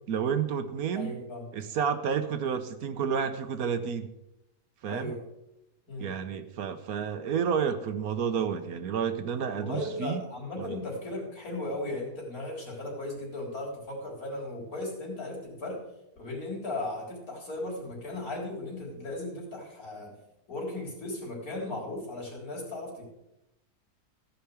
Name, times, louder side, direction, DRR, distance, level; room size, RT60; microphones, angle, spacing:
voice 1, 0.1-1.1 1.5-4.1 4.8-5.1 6.0-10.2 10.6-10.8, right 7 dB, 70° right, 9 dB, 1.2 m, -30 dB
voice 2, 0.9-1.5 4.9-5.2 5.9-6.1 9.5-15.8 16.2-20.2 20.5-23.0, left 2 dB, 65° left, -2 dB, 4.1 m, -36 dB
14.5 x 5.8 x 7.0 m, 0.88 s
omnidirectional pair, 1.7 m